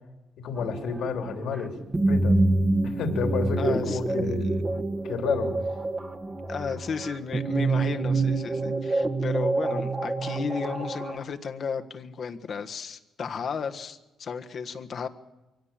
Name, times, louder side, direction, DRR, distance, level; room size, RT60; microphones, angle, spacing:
voice 1, 0.4-1.8 2.1-2.4 2.8-4.5 5.0-5.5, left 5 dB, 75° left, 4 dB, 3.4 m, -30 dB
sound 1, 0.6-11.2, right 2 dB, 25° right, 1.6 m, -27 dB
voice 2, 3.6-4.6 6.5-15.1, left 6 dB, 55° left, 6 dB, 1.5 m, -34 dB
23.5 x 17.0 x 7.5 m, 1.0 s
cardioid pair, 90°, 0 cm